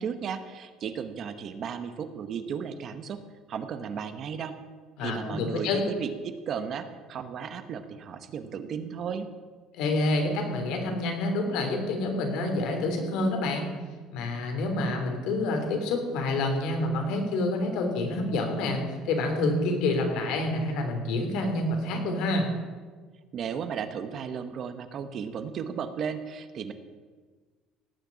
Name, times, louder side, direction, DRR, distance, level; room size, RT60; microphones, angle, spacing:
voice 1, 0.0-3.2 3.5-4.6 5.0-9.3 23.3-26.7, right 7 dB, 40° right, 10 dB, 1.0 m, -35 dB
voice 2, 5.0-5.8 9.8-13.7 14.1-22.5, left 2 dB, 65° left, 3 dB, 3.2 m, -28 dB
17.5 x 6.7 x 8.6 m, 1.4 s
cardioid pair, 160°, 0 cm